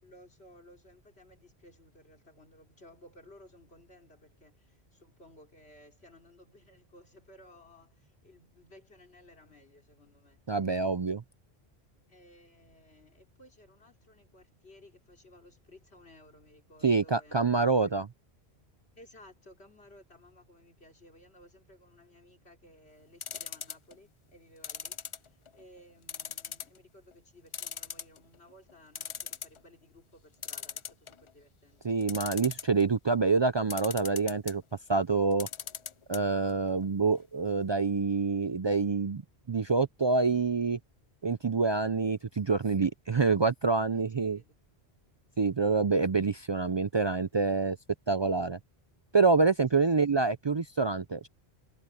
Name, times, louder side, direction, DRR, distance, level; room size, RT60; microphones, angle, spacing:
voice 1, 0.0-10.4 12.1-18.1 18.9-25.0 25.5-31.9 43.9-44.6 49.7-50.0, left 1 dB, 75° left, 3.5 m, -57 dB
voice 2, 10.5-11.2 16.8-18.1 31.8-34.6 34.9-35.5 36.1-39.2 39.5-40.8 41.2-44.4 45.4-47.8 48.1-48.6 49.1-51.3, right 4 dB, 50° right, 0.3 m, -26 dB
sound 1, 23.2-23.9 24.6-25.6 26.1-26.8 27.1-27.2 27.5-28.4 28.7-28.8 29.0-29.6 30.4-31.3 32.0-32.8 33.7-34.6 35.3-36.2 36.5-36.6 36.8-36.9, left 7 dB, 45° left, 0.4 m, -39 dB
omnidirectional pair, 1.1 m